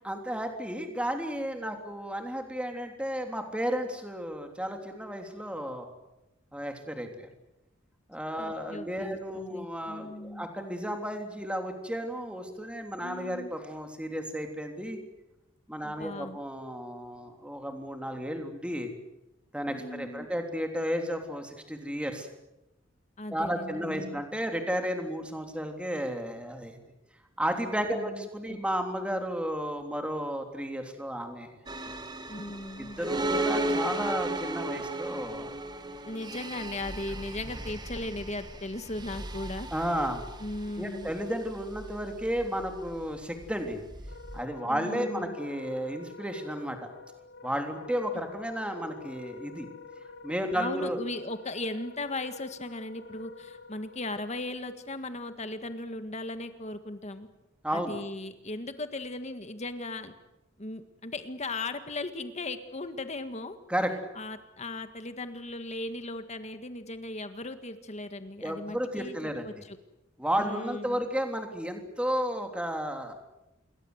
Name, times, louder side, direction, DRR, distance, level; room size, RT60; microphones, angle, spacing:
voice 1, 0.0-5.9 6.5-7.3 8.1-15.0 15.7-18.9 19.5-22.3 23.3-26.8 27.4-31.5 31.9-32.0 32.8-35.6 39.7-40.2 40.8-43.8 44.3-46.9 47.4-49.7 50.2-51.0 57.6-58.0 63.7-63.9 68.4-69.5 70.2-73.2, equal, 5° right, 4 dB, 3.4 m, -33 dB
voice 2, 8.4-10.5 13.0-13.5 15.8-16.4 19.7-20.3 23.2-24.2 27.9-28.6 32.3-33.5 36.1-39.7 40.4-41.1 44.7-45.4 50.5-57.3 57.7-60.1 60.6-63.6 64.2-69.2 69.5-69.8 70.4-71.1, left 2 dB, 35° left, 9 dB, 1.8 m, -37 dB
sound 1, 31.7-44.4, right 2 dB, 20° right, 1.7 m, -35 dB
Wind instrument woodwind instrument, 44.0-54.1, left 4 dB, 55° left, 1.5 m, -48 dB
28.0 x 22.0 x 8.0 m, 0.93 s
head